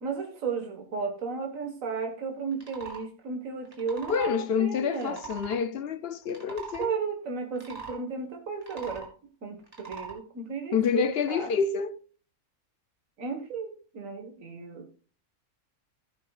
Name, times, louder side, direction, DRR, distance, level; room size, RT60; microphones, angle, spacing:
voice 1, 0.0-5.2 6.8-9.1 9.4-11.5 13.2-15.0, right 5 dB, 70° right, 1.9 m, -34 dB
sound 1, 2.5-3.0 3.7-4.3 5.0-5.6 6.2-6.9 7.5-8.0 8.5-9.1 9.7-10.2, right 4 dB, 25° right, 2.7 m, -41 dB
voice 2, 4.1-6.9 10.7-12.0, left 7 dB, 60° left, 0.7 m, -28 dB
15.0 x 8.4 x 2.4 m
omnidirectional pair, 1.5 m